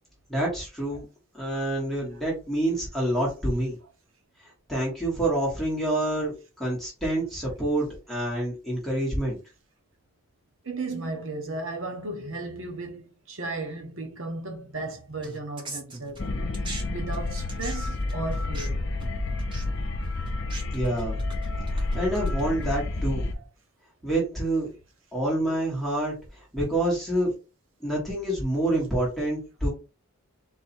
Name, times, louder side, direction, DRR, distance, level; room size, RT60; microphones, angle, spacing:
voice 1, 0.3-1.0 1.3-3.8 4.7-9.4 20.7-21.2 21.7-23.3 24.0-24.7 25.1-27.3 27.8-29.7, right 1 dB, ahead, 1.5 m, -27 dB
voice 2, 10.6-16.3 16.9-19.0, right 2 dB, 65° right, 1.0 m, -35 dB
sound 1, 15.2-16.8 17.1-22.9, right 2 dB, 20° right, 0.8 m, -42 dB
sound 2, 16.2-23.3, left 2 dB, 55° left, 0.7 m, -30 dB
4.0 x 2.8 x 4.3 m
head